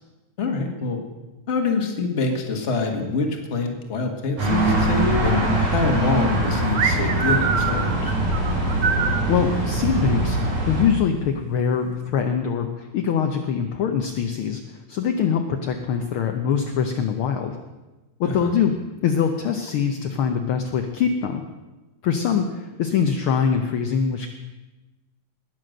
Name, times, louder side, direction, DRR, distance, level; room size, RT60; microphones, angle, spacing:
voice 1, 0.4-1.0 1.5-8.1 18.2-18.5, left 3 dB, 30° left, 3 dB, 1.5 m, -25 dB
sound 1, 4.4-10.8, right 1 dB, 85° right, 5.7 m, -22 dB
sound 2, 6.7-9.2, right 6 dB, 65° right, 1.0 m, -24 dB
voice 2, 9.3-17.6 18.2-18.7 19.0-21.4 22.0-24.3, left 7 dB, 70° left, 5 dB, 1.3 m, -23 dB
20.0 x 7.8 x 6.5 m, 1.1 s
omnidirectional pair, 3.4 m